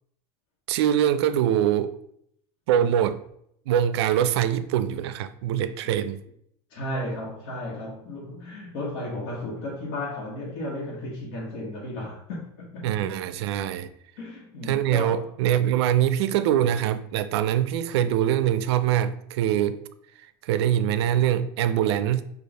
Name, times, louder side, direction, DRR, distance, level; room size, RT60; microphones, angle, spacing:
voice 1, 0.7-2.0 2.7-3.2 3.7-6.2 12.8-13.9 14.7-19.8 20.4-22.2, right 10 dB, 90° right, 0.4 m, -23 dB
voice 2, 6.7-12.9 14.2-15.2, left 1 dB, 75° left, 1.2 m, -34 dB
5.0 x 2.5 x 3.9 m
supercardioid pair, 145°, 13 cm